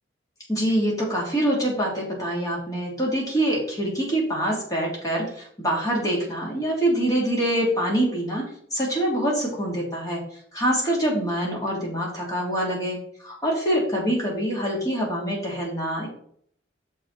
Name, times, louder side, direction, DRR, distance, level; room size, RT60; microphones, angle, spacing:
voice 1, 0.5-8.4 8.7-10.2 10.5-16.1, right 1 dB, 20° left, -4 dB, 3.4 m, -25 dB
7.5 x 6.8 x 4.5 m, 0.62 s
head